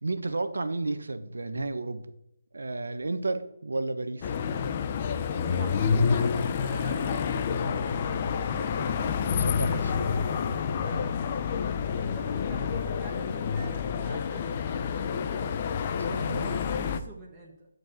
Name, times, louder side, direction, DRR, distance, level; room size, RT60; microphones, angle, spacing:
voice 1, 0.0-2.1 2.5-4.3 9.3-10.5 16.1-16.5, right 2 dB, 90° right, 10 dB, 1.1 m, -32 dB
sound 1, 4.2-17.0, left 6 dB, 30° left, 0.5 m, -28 dB
voice 2, 5.3-9.0 10.8-11.4 11.9-15.0 15.9-17.7, right 2 dB, 10° right, -5 dB, 1.3 m, -46 dB
9.3 x 4.7 x 7.5 m, 0.80 s
hypercardioid pair, 170°, 0 cm